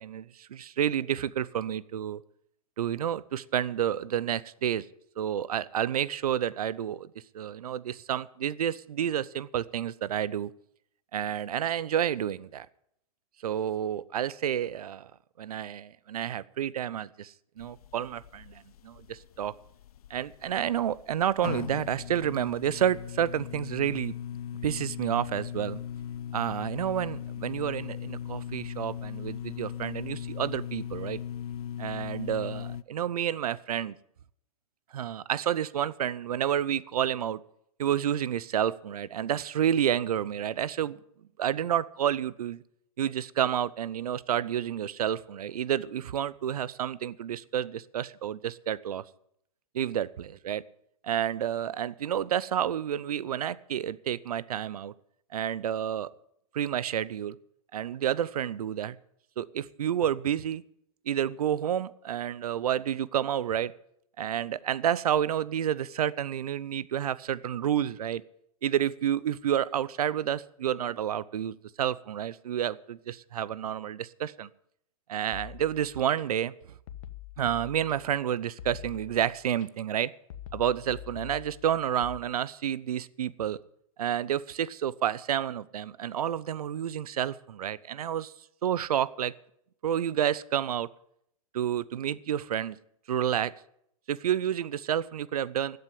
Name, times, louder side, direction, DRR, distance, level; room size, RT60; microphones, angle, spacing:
voice 1, 0.0-2.2 2.8-4.8 5.2-7.1 7.3-10.5 11.1-12.7 13.4-15.1 15.4-19.5 20.1-24.1 24.6-25.8 26.3-31.2 31.8-34.0 34.9-37.4 37.8-41.0 41.4-42.6 43.0-49.0 49.7-50.6 51.0-54.9 55.3-56.1 56.5-57.4 57.7-59.0 59.4-60.6 61.1-63.7 64.2-68.2 68.6-74.5 75.1-76.5 77.4-80.1 80.5-83.6 84.0-88.3 88.6-89.3 89.8-90.9 91.5-92.8 93.1-93.5 94.1-95.8, right 10 dB, 75° right, 19 dB, 0.7 m, -30 dB
sound 1, 17.6-32.8, left 9 dB, 75° left, 0.5 m, -39 dB
sound 2, 75.3-76.2 76.9-78.2 78.6-79.7 80.3-82.2, left 11 dB, 60° left, 1.3 m, -45 dB
13.0 x 8.0 x 9.9 m, 0.72 s
hypercardioid pair, 120°, 19 cm